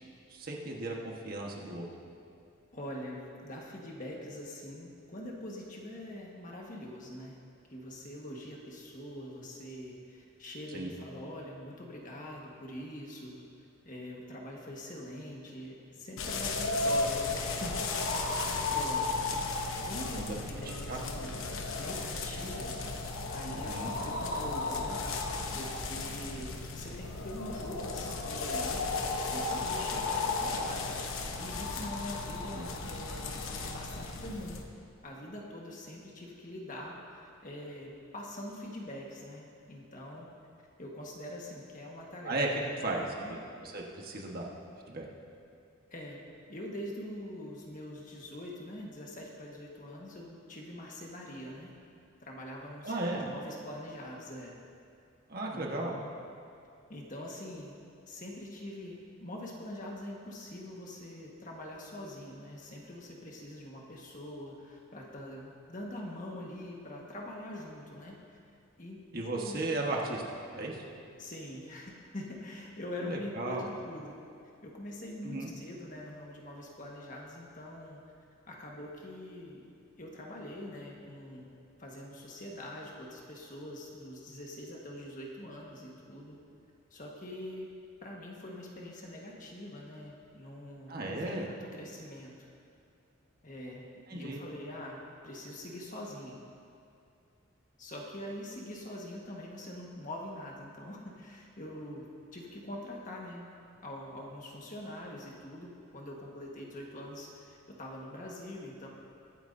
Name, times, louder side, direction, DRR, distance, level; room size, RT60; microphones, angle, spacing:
voice 1, 0.3-1.9 10.7-10.9 20.2-20.3 20.9-21.0 23.5-23.9 32.5-32.7 42.2-42.5 42.8-43.4 43.6-44.5 44.9-45.0 52.8-53.3 55.3-55.9 69.1-70.2 70.5-70.8 73.0-73.6 75.2-75.5 90.9-91.5 94.1-94.4, right 2 dB, 45° right, -1 dB, 1.4 m, -35 dB
voice 2, 2.7-7.4 7.7-13.5 13.8-19.2 19.9-21.4 21.8-22.8 23.3-25.0 25.5-28.8 29.3-31.0 31.4-34.6 35.0-40.3 40.8-43.3 45.9-46.2 46.5-51.7 52.2-52.9 53.3-54.6 55.5-56.2 56.9-57.8 58.1-68.4 68.8-69.0 69.3-69.6 71.2-74.2 74.6-78.0 78.5-79.7 80.0-81.5 81.8-86.4 86.9-87.7 88.0-92.4 93.4-96.4 97.8-103.4 103.8-108.9, left 1 dB, 40° left, -2 dB, 1.5 m, -44 dB
sound 1, 16.2-34.6, left 3 dB, 75° left, 1.0 m, -34 dB
23.0 x 9.1 x 2.7 m, 2.4 s
head